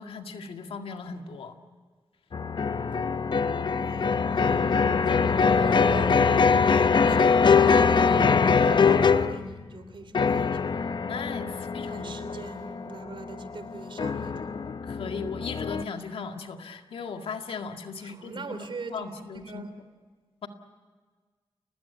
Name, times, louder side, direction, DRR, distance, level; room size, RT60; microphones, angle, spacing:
voice 1, 0.0-1.5 11.0-12.4 14.8-18.7 18.9-19.6 20.4-20.5, left 5 dB, 80° left, 5 dB, 2.0 m, -37 dB
sound 1, 2.3-9.5 10.1-15.8, left 5 dB, 55° left, 0.9 m, -23 dB
voice 2, 3.8-10.7 11.9-14.5 18.0-19.7, right 4 dB, 65° right, 10 dB, 3.2 m, -41 dB
30.0 x 20.0 x 9.5 m, 1.5 s
cardioid pair, 70°, 9 cm